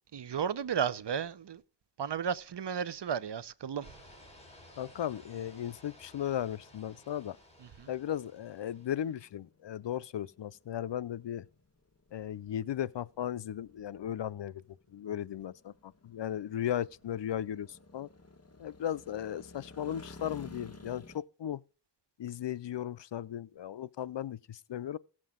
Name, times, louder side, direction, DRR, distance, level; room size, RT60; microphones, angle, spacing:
voice 1, 0.1-1.6 2.0-3.9 7.8-7.9, right 7 dB, 65° right, 0.7 m, -33 dB
sound 1, 3.8-9.2, left 1 dB, 15° left, 4.4 m, -57 dB
voice 2, 4.8-7.4 7.9-11.5 12.1-14.6 14.9-18.1 18.6-21.6 22.2-25.0, left 10 dB, 75° left, 0.5 m, -36 dB
sound 2, 5.2-21.2, left 2 dB, 35° left, 1.5 m, -55 dB
16.5 x 7.5 x 3.7 m
wide cardioid pair, 95°, 44 cm